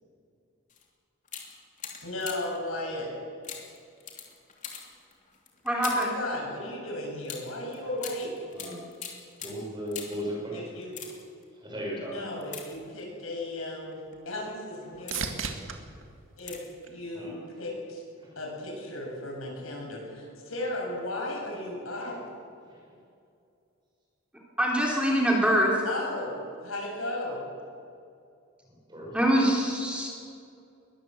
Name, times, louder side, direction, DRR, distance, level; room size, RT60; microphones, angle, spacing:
sound 1, 0.7-0.9 1.2-2.6 3.4-6.2 7.2-10.3 10.8-11.4 12.4-13.2 13.9-14.2 14.7-15.5 16.4-16.8 17.1-17.2, left 7 dB, 35° left, 2.9 m, -42 dB
voice 1, 2.0-3.1 5.9-8.3 10.5-10.9 12.0-14.0 14.3-15.4 16.4-16.6 16.9-18.0 18.4-22.2 25.9-26.3 26.6-27.4, left 1 dB, 85° left, -1 dB, 7.4 m, -35 dB
voice 2, 5.6-6.2 24.6-25.8 29.1-30.1, equal, 5° right, -2 dB, 3.3 m, -24 dB
voice 3, 8.5-8.8 9.4-10.7 11.5-12.4 17.1-17.4 18.2-18.3 22.6-22.8 28.9-29.2, equal, 20° right, -2 dB, 6.3 m, -37 dB
sound 2, 13.4-17.6 18.1-18.7 26.5-26.6, right 5 dB, 70° right, 2.0 m, -40 dB
22.0 x 19.5 x 7.7 m, 2.5 s
head